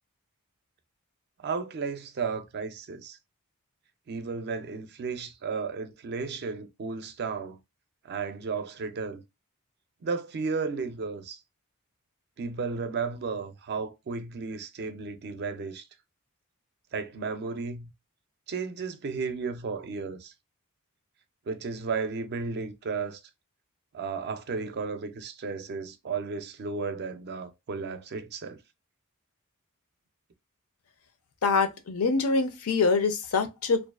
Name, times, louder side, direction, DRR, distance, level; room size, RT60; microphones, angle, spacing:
voice 1, 1.4-3.2 4.1-7.6 8.0-9.2 10.0-11.4 12.4-15.9 16.9-17.9 18.5-20.3 21.5-23.2 23.9-28.6, right 4 dB, 50° right, 0.4 m, -34 dB
voice 2, 31.4-33.8, left 4 dB, 70° left, 0.5 m, -25 dB
2.4 x 2.3 x 2.3 m
head